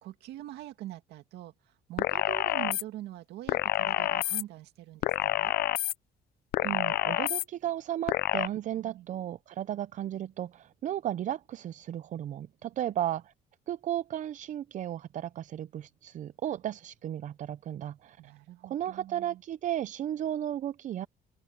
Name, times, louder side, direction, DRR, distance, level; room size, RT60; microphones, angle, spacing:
voice 1, 0.0-1.5 1.9-5.5 8.8-9.1 18.2-19.4, right 14 dB, 80° right, 2.3 m, -44 dB
sound 1, 2.0-2.8 3.5-4.4 5.0-5.9 6.5-7.4 8.1-8.5, left 15 dB, 65° left, 0.5 m, -28 dB
voice 2, 6.6-13.3 13.7-18.3 18.6-21.1, right 11 dB, 50° right, 0.5 m, -34 dB
open air
cardioid pair, 110°, 17 cm